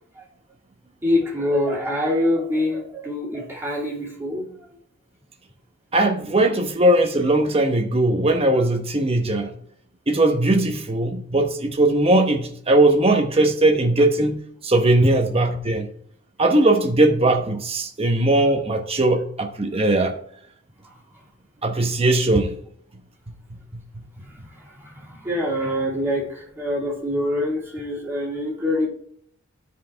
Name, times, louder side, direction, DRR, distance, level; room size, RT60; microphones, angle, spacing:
voice 1, 1.0-4.8 15.0-15.1 20.8-21.0 24.2-28.9, left 1 dB, 15° right, -5 dB, 2.9 m, -25 dB
voice 2, 5.9-9.5 10.1-15.9 16.4-20.1 21.6-22.5 23.7-23.8, right 2 dB, 30° right, 4 dB, 1.1 m, -19 dB
13.0 x 5.0 x 3.4 m, 0.65 s
head